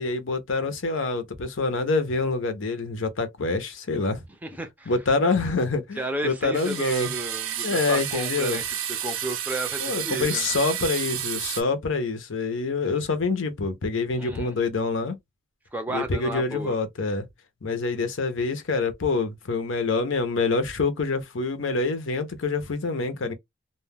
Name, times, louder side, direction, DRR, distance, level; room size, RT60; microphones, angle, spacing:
voice 1, 0.0-4.2 4.9-7.1 7.6-8.6 9.8-15.2 15.9-17.3 17.6-23.3, left 3 dB, 70° left, 0.7 m, -26 dB
voice 2, 4.4-4.9 6.0-8.8 9.0-10.5 14.2-14.5 15.7-16.8, right 2 dB, 10° right, 0.5 m, -32 dB
sound 1, 6.5-11.6, right 10 dB, 85° right, 0.6 m, -31 dB
2.2 x 2.2 x 3.4 m
head